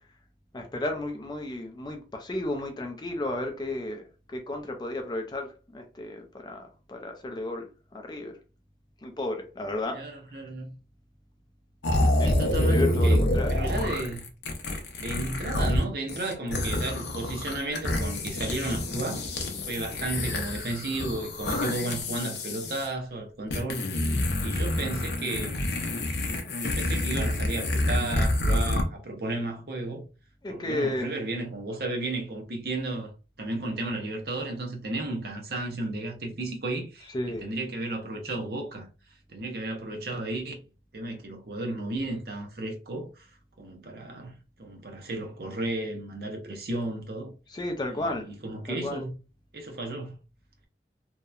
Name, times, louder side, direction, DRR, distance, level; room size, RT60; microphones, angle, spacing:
voice 1, 0.5-7.7 7.9-8.3 9.0-10.0 10.3-10.5 12.2-13.5 30.4-31.1 37.1-37.5 47.5-48.3 48.7-49.0, left 1 dB, 25° left, 0.4 m, -33 dB
voice 2, 9.9-10.7 12.2-13.2 13.5-14.3 15.0-19.2 19.7-23.8 24.4-25.6 26.6-30.0 30.5-33.1 33.4-38.9 39.3-40.6 40.9-43.3 43.6-47.3 47.9-49.1 49.5-50.2, right 2 dB, 60° right, 0.6 m, -33 dB
sound 1, 11.8-15.8 16.1-22.9 23.5-28.8, left 1 dB, 75° left, 0.5 m, -27 dB
2.8 x 2.1 x 2.3 m
head